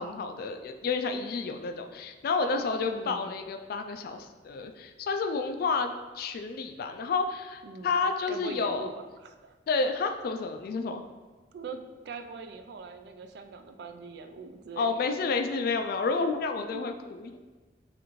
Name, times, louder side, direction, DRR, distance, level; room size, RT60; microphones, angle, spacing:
voice 1, 0.0-8.9 9.7-11.0 14.8-17.4, left 4 dB, 55° left, 5 dB, 0.3 m, -30 dB
voice 2, 2.8-3.3 7.6-8.0 8.3-8.9 9.2-9.6 11.5-14.9 16.7-16.8, right 4 dB, 65° right, 7 dB, 0.4 m, -42 dB
6.1 x 2.5 x 3.0 m, 1.3 s
head